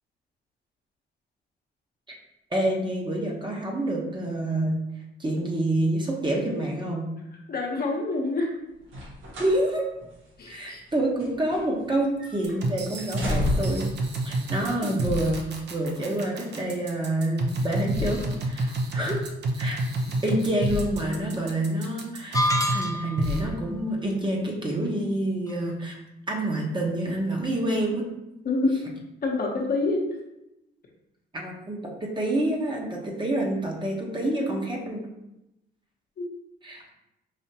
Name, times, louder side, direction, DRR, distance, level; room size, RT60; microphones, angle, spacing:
voice 1, 2.5-4.8 5.2-7.1 9.4-9.9 10.5-13.9 14.2-19.2 19.6-19.8 20.2-26.0 26.3-28.0 31.3-35.1 36.6-36.9, right 1 dB, 25° right, -1 dB, 1.0 m, -27 dB
voice 2, 7.5-8.5 10.4-10.8 28.4-28.8 29.2-30.0 36.2-36.3, left 3 dB, 50° left, 0 dB, 0.9 m, -26 dB
sound 1, 8.8-9.6 10.0-10.1 10.9-11.9 12.2-12.6 13.0-13.9 14.8-14.9, left 2 dB, 80° right, 1.3 m, -30 dB
sound 2, 12.4-22.8 23.2-23.4, right 1 dB, 60° right, 0.7 m, -29 dB
sound 3, 22.3-23.3, equal, 15° left, 0.4 m, -26 dB
5.0 x 2.8 x 2.8 m, 0.90 s
cardioid pair, 90°, 20 cm